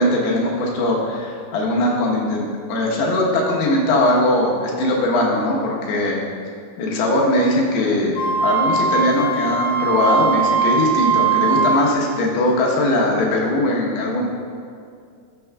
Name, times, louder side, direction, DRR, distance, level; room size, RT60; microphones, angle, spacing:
voice 1, 0.0-6.2 6.8-14.2, left 1 dB, 80° left, -2 dB, 3.1 m, -20 dB
Wind instrument woodwind instrument, 8.2-11.9, right 5 dB, 65° left, 3.6 m, -20 dB
13.5 x 6.9 x 2.3 m, 2.3 s
omnidirectional pair, 4.8 m